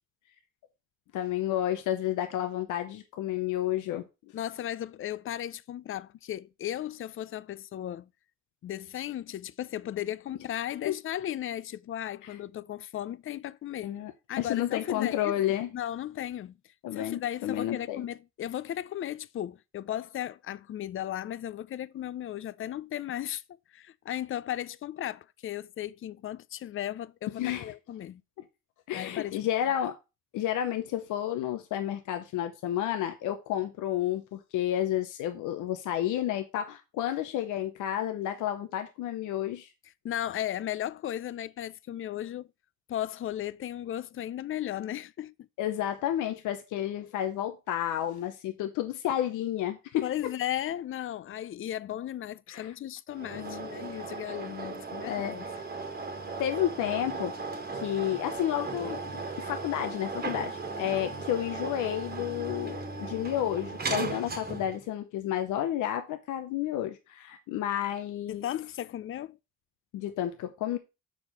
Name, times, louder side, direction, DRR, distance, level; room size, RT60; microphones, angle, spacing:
voice 1, 1.1-4.0 10.8-10.9 12.2-12.4 13.8-14.1 14.4-15.7 16.8-18.1 27.4-27.7 28.9-29.9 30.3-39.7 45.6-50.3 52.5-52.7 53.3-53.9 54.7-54.8 55.0-55.6 56.4-57.3 57.7-68.4 69.9-70.8, left 12 dB, 90° left, 0.8 m, -31 dB
voice 2, 4.3-8.1 8.6-14.0 14.3-15.4 15.7-16.6 16.9-23.4 23.7-28.2 28.9-29.4 40.0-42.5 42.9-45.3 50.0-55.5 61.0-61.1 68.3-69.4, left 11 dB, 45° left, 0.5 m, -35 dB
sound 1, 53.1-64.8, right 4 dB, 30° right, 1.5 m, -37 dB
6.2 x 4.9 x 5.5 m
cardioid pair, 90°, 30 cm